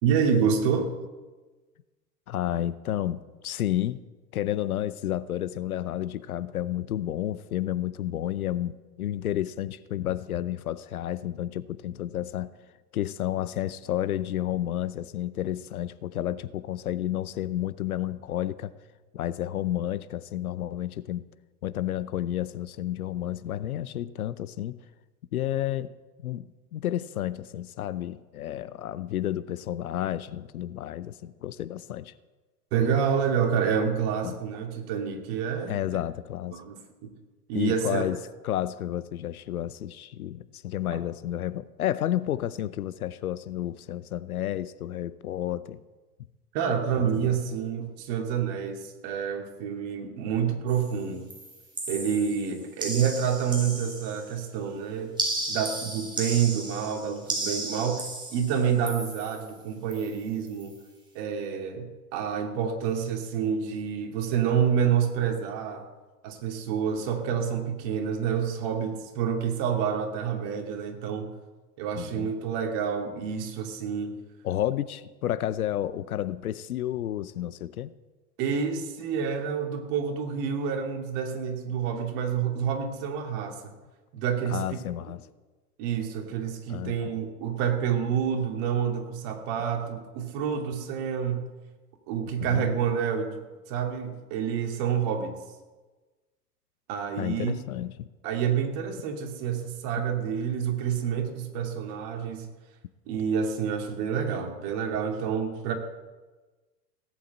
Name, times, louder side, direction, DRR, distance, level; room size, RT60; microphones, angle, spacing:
voice 1, 0.0-0.9 32.7-35.8 36.5-37.1 37.5-38.1 40.9-41.0 46.5-51.3 51.9-55.2 55.5-60.7 61.1-65.8 66.2-71.3 71.8-74.1 78.4-83.7 84.1-84.6 85.8-91.5 92.1-93.4 93.7-95.3 96.9-97.5 98.2-102.5 103.1-105.7, right 7 dB, 40° right, 3 dB, 2.7 m, -28 dB
voice 2, 2.3-4.0 4.3-12.5 12.9-18.7 19.1-21.2 21.6-24.8 25.3-25.9 26.2-32.1 34.2-34.4 35.7-36.6 37.5-38.2 38.4-45.8 47.0-47.4 72.0-72.3 74.4-77.9 84.5-85.2 86.7-87.1 92.4-92.7 97.2-98.1, left 12 dB, 60° left, 17 dB, 0.8 m, -31 dB
sound 1, 50.7-51.0 51.3-54.4 55.2-59.5 59.9-60.2 60.5-60.7, right 2 dB, 10° right, 3.8 m, -35 dB
17.5 x 8.5 x 7.7 m, 1.2 s
figure-of-eight pair, 95°, 48 cm